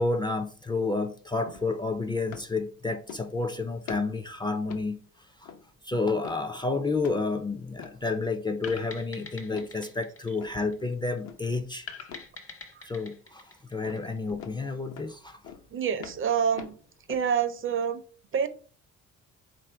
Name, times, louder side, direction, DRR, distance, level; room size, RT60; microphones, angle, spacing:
voice 1, 0.0-5.0 5.4-5.5 5.8-11.9 12.8-13.4 13.7-15.4, left 3 dB, 15° left, 0.4 m, -30 dB
sound 1, 1.5-1.7 2.3-2.5 3.1-3.4 3.9-4.2 4.7-4.9 5.4-5.7 6.2-6.5 7.0-7.3 7.8-8.0 8.6-8.9 9.5-9.8 10.4-10.6 11.2-11.5 12.1-12.3 13.8-14.1 14.4-14.6 14.9-15.1 15.4-15.7 16.0-17.3, left 7 dB, 65° left, 0.7 m, -44 dB
sound 2, 8.6-11.2 11.9-14.4, left 5 dB, 50° left, 1.0 m, -45 dB
voice 2, 15.7-16.7 17.1-18.0 18.3-18.5, right 7 dB, 45° right, 0.5 m, -27 dB
3.9 x 2.6 x 4.3 m
cardioid pair, 90°, 30 cm